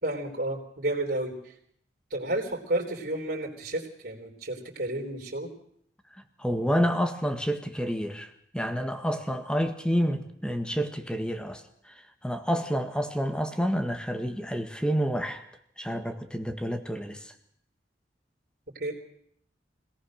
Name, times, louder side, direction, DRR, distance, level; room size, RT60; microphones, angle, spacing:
voice 1, 0.0-1.5 2.1-5.5 18.7-18.9, right 1 dB, 60° right, 0 dB, 3.7 m, -31 dB
voice 2, 6.4-11.9 12.2-15.4 15.8-17.3, equal, 5° left, 8 dB, 1.7 m, -29 dB
25.0 x 18.0 x 6.5 m, 0.68 s
head